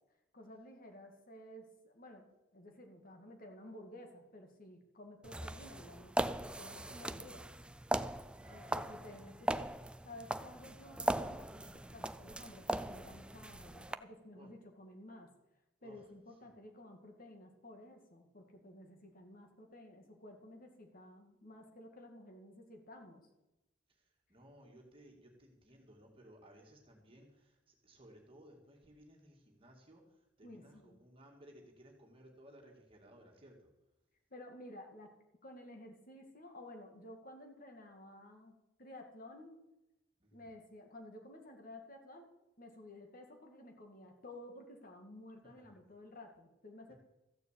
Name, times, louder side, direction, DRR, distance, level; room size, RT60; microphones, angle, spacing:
voice 1, 0.3-7.5 8.5-9.8 10.0-15.3 15.8-23.2 30.4-31.0 34.3-35.1 35.4-39.5 40.3-42.3 42.6-46.9, left 1 dB, 45° left, 3 dB, 2.2 m, -53 dB
sound 1, 5.2-13.9, right 1 dB, 5° right, 0.4 m, -39 dB
voice 2, 8.3-9.0 14.3-14.5 15.8-16.1 16.4-16.5 23.9-33.7 40.2-40.5 45.6-45.7 46.9-47.0, right 1 dB, 30° right, 0 dB, 2.2 m, -60 dB
14.5 x 6.9 x 8.3 m, 0.97 s
head